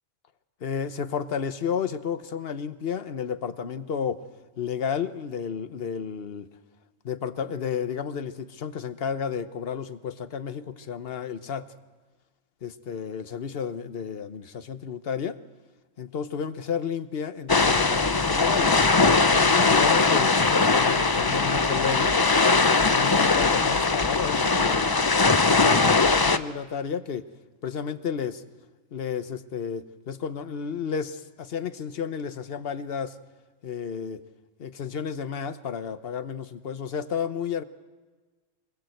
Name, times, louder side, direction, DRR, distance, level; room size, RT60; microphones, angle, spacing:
voice 1, 0.6-4.2 4.6-6.5 7.0-11.7 12.6-15.4 16.0-18.8 19.3-22.2 22.7-25.1 25.5-27.3 27.6-28.4 28.9-33.2 33.6-34.2 34.6-37.6, left 7 dB, 50° left, 12 dB, 1.0 m, -32 dB
sound 1, 17.5-26.4, left 3 dB, 30° left, 0.4 m, -20 dB
23.5 x 21.0 x 7.9 m, 1.3 s
omnidirectional pair, 1.4 m